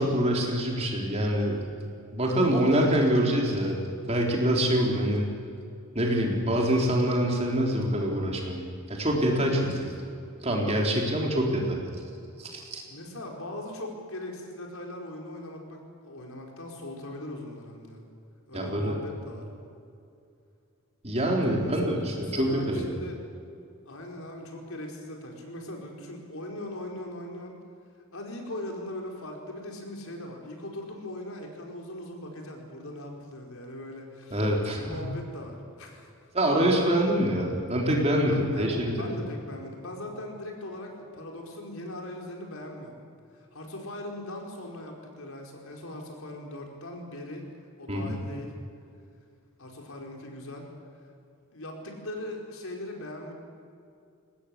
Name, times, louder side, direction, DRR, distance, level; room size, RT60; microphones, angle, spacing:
voice 1, 0.0-1.6 2.1-5.2 5.9-8.6 8.9-9.9 10.4-11.8 12.4-12.8 18.5-19.0 21.0-22.9 34.3-35.1 36.3-38.9 47.9-48.2, right 1 dB, 30° right, 0 dB, 3.8 m, -25 dB
voice 2, 12.9-18.0 18.5-19.5 21.5-23.2 23.8-27.6 28.1-34.5 34.7-36.1 38.3-43.0 43.3-47.5 47.8-48.5 49.6-50.7 51.5-53.3, left 1 dB, 75° left, 1 dB, 4.7 m, -40 dB
22.0 x 19.0 x 8.5 m, 2.5 s
head